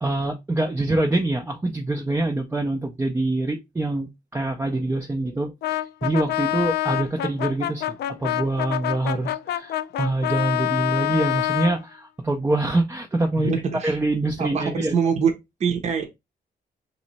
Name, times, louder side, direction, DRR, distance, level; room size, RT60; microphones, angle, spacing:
voice 1, 0.0-7.8 8.2-13.5 13.8-14.9, right 2 dB, 15° right, 0.5 m, -25 dB
Brass instrument, 5.6-11.8, left 14 dB, 70° left, 0.4 m, -26 dB
voice 2, 13.4-14.0 14.4-14.6 14.9-15.3 15.6-16.1, right 6 dB, 40° right, 0.8 m, -23 dB
3.1 x 3.1 x 4.1 m
cardioid pair, 150°, 17 cm